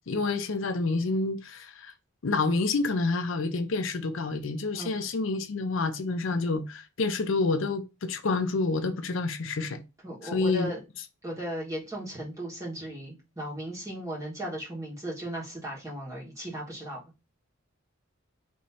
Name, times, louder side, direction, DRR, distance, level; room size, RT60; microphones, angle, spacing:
voice 1, 0.1-1.9 2.2-9.8 10.2-10.7, left 3 dB, 65° left, 0.5 m, -28 dB
voice 2, 10.0-10.8 11.2-17.0, right 1 dB, 15° right, 1.5 m, -36 dB
3.5 x 3.1 x 4.2 m
head